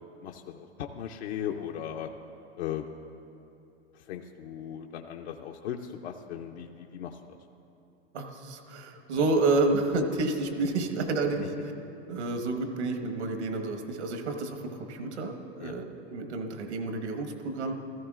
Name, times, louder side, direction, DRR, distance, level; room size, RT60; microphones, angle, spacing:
voice 1, 0.2-2.1 2.6-2.9 3.9-7.4 15.6-15.7, left 9 dB, 75° left, 2 dB, 0.7 m, -37 dB
voice 2, 8.1-11.4 12.1-17.8, right 3 dB, 80° right, 5 dB, 1.4 m, -29 dB
15.5 x 13.5 x 2.4 m, 2.8 s
hypercardioid pair, 100°, 33 cm